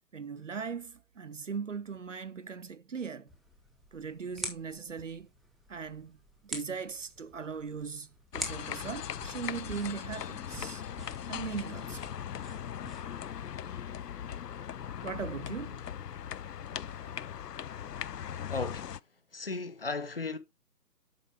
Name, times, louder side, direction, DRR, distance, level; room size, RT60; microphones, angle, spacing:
voice 1, 0.1-3.3 3.9-5.3 5.7-10.8 11.3-12.1 15.0-15.8, right 6 dB, 50° right, 0.5 m, -39 dB
sound 1, 3.3-13.3, equal, ahead, 0.4 m, -46 dB
sound 2, 8.3-19.0, left 9 dB, 75° left, 0.5 m, -39 dB
voice 2, 18.5-18.9 19.3-20.4, left 4 dB, 35° left, 0.7 m, -35 dB
7.7 x 5.6 x 3.3 m
figure-of-eight pair, 145°, 49 cm